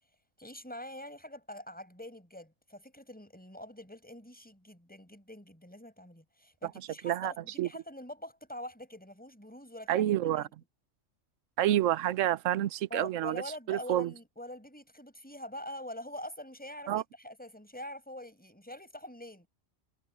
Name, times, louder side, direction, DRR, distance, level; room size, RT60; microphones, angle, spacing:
voice 1, 0.4-10.1 10.4-10.5 12.9-19.5, left 1 dB, 5° left, 5.5 m, -45 dB
voice 2, 9.9-10.4 11.6-13.4 13.7-14.1 16.9-17.0, right 12 dB, 75° right, 1.1 m, -28 dB
omnidirectional pair, 1.3 m